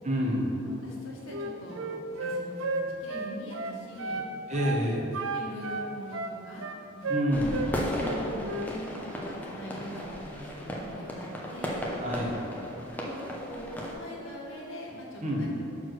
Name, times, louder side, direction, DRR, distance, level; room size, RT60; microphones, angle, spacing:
voice 1, 0.0-0.5 4.5-5.1 7.1-7.6 12.0-12.3 15.2-15.5, equal, 35° right, -2 dB, 0.9 m, -28 dB
voice 2, 0.6-1.9 2.2-4.2 5.3-6.6 6.9-7.1 7.5-11.8 12.9-15.5, equal, 70° left, -4 dB, 1.5 m, -42 dB
Wind instrument woodwind instrument, 1.3-4.3 4.5-4.8 5.1-7.7 8.0-8.7, right 3 dB, 75° right, 0.5 m, -33 dB
sound 1, 7.3-13.9, equal, 10° left, 0.7 m, -35 dB
6.2 x 4.7 x 6.1 m, 3.0 s
head